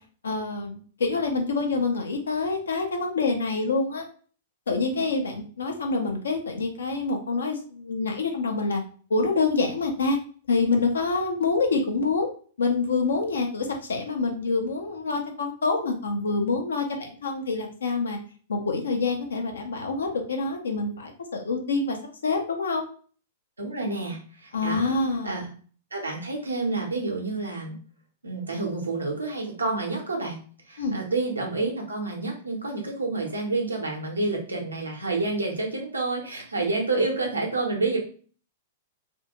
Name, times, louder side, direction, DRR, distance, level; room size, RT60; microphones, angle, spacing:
voice 1, 0.2-4.0 4.7-8.8 9.1-10.2 10.5-12.3 12.6-18.2 18.5-22.0 22.2-22.8 24.5-25.4 30.8-31.0, left 3 dB, 65° left, 2 dB, 0.6 m, -26 dB
voice 2, 23.6-24.9 25.2-25.5 25.9-27.8 28.2-30.4 30.7-38.0, right 3 dB, 75° right, 0 dB, 0.8 m, -29 dB
2.6 x 2.3 x 2.9 m, 0.42 s
figure-of-eight pair, 100°, 0 cm